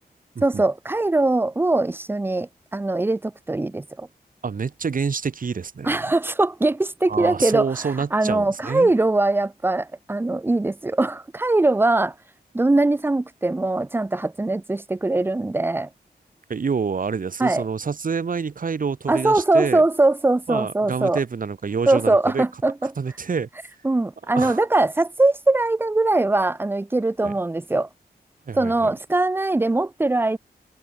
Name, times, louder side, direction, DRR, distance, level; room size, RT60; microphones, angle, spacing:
voice 1, 0.4-4.1 5.8-12.1 12.5-15.9 17.4-17.7 19.1-21.2 21.9-22.9 23.8-27.9 28.5-30.4, right 2 dB, 15° right, 0.5 m, -21 dB
voice 2, 4.4-6.1 7.1-8.9 16.5-19.8 20.5-22.4 23.0-23.5 24.4-24.6 27.2-27.3 28.5-28.9, right 5 dB, 55° right, 2.1 m, -27 dB
wide cardioid pair, 160°, 17 cm